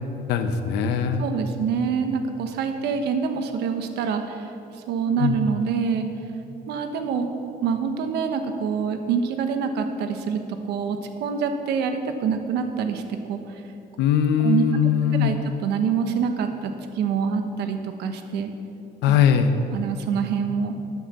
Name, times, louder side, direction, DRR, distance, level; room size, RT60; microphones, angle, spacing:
voice 1, 0.3-1.2 5.2-5.4 14.0-15.4 19.0-19.5, left 8 dB, 85° left, 8 dB, 1.0 m, -20 dB
voice 2, 1.2-4.5 4.9-6.1 6.7-7.3 7.6-10.4 10.7-13.0 13.3-13.4 14.4-14.6 15.1-15.4 15.6-18.5 19.1-19.2 19.7-20.8, right 6 dB, 80° right, 7 dB, 1.2 m, -26 dB
13.5 x 8.2 x 7.1 m, 2.8 s
cardioid pair, 110°, 17 cm